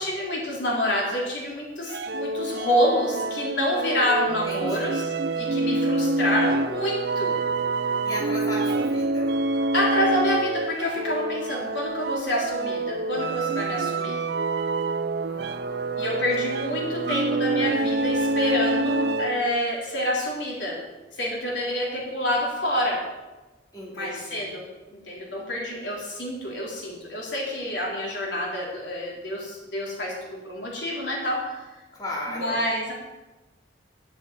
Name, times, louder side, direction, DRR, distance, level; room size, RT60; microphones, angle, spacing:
voice 1, 0.0-7.4 9.7-14.2 16.0-20.8 21.1-23.0 23.9-24.6 24.9-31.6 32.3-32.9, left 1 dB, 80° left, -2 dB, 3.8 m, -27 dB
sound 1, 1.9-19.6, right 2 dB, 60° right, 0.6 m, -26 dB
voice 2, 4.3-5.0 8.0-9.4 15.2-16.2 23.7-24.6 31.9-32.6, left 1 dB, 20° left, -5 dB, 3.1 m, -37 dB
10.5 x 7.3 x 9.3 m, 1.1 s
head